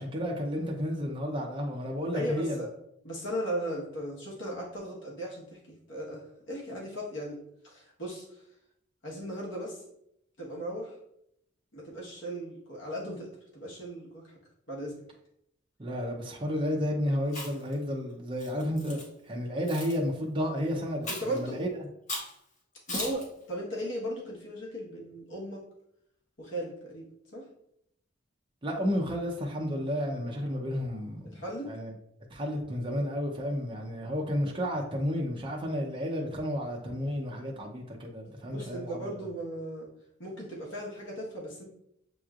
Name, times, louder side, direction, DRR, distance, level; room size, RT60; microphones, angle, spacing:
voice 1, 0.0-2.6 15.8-21.7 28.6-31.4 31.7-31.9 32.3-39.0, equal, 25° right, 0.7 m, -32 dB
voice 2, 2.1-2.7 3.0-7.4 7.6-8.4 9.0-9.8 10.4-10.9 11.7-14.2 14.7-14.9 21.1-21.6 22.9-25.6 26.4-27.1 27.3-27.4 31.3-31.7 38.5-39.9 40.2-41.6, equal, 65° left, 1.3 m, -37 dB
Chewing mastication, 17.2-17.7 18.4-19.0 19.7-19.9 21.0-21.4 22.1-22.3 22.9-23.2, left 1 dB, 40° left, 1.3 m, -36 dB
7.2 x 3.1 x 2.4 m
head